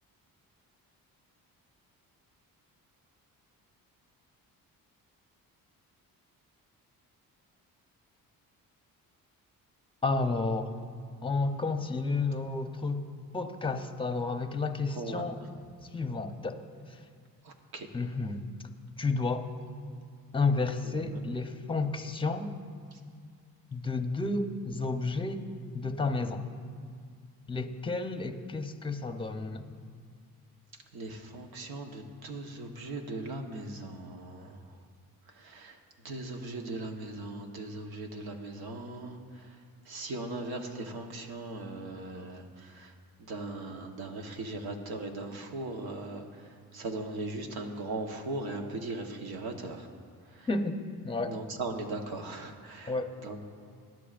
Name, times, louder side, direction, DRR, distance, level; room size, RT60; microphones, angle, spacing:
voice 1, 10.0-10.7 11.2-13.0 13.3-15.4 15.9-16.6 16.9-17.0 17.9-18.4 19.0-19.5 20.3-22.5 23.7-25.4 25.7-26.4 27.5-29.7 50.5-50.8 51.0-51.3 52.9-53.1, left 3 dB, 15° left, 7 dB, 0.7 m, -31 dB
voice 2, 14.9-15.5 17.4-17.9 20.8-21.3 22.9-23.0 30.7-34.8 35.2-35.8 36.0-49.9 50.2-50.5 51.2-53.5, right 2 dB, 80° right, 3 dB, 1.3 m, -39 dB
20.0 x 11.0 x 2.5 m, 2.1 s
cardioid pair, 100°, 36 cm